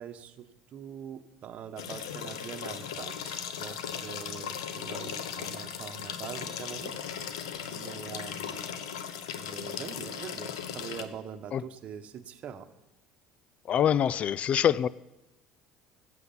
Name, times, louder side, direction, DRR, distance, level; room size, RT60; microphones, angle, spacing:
voice 1, 0.0-8.6 9.4-12.7, right 8 dB, 50° right, 1.1 m, -43 dB
sound 1, 1.8-11.1, left 8 dB, 85° left, 1.0 m, -37 dB
voice 2, 13.7-14.9, left 9 dB, 50° left, 0.4 m, -24 dB
14.5 x 8.1 x 5.9 m
hypercardioid pair, 70°, 3 cm